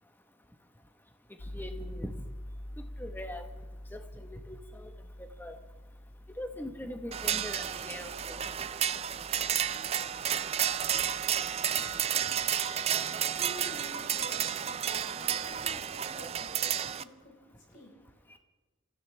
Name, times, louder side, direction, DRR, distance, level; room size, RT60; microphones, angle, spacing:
sound 1, 1.4-12.0, left 1 dB, 65° left, 1.0 m, -47 dB
voice 1, 1.5-2.1 3.0-3.5 3.9-4.9 5.4-5.6 6.4-8.4, left 1 dB, 10° left, 6 dB, 1.2 m, -41 dB
sound 2, 7.1-17.0, right 9 dB, 30° right, 0.4 m, -31 dB
voice 2, 12.9-18.4, equal, 40° left, -1 dB, 5.0 m, -50 dB
27.5 x 15.0 x 3.4 m, 1.2 s
head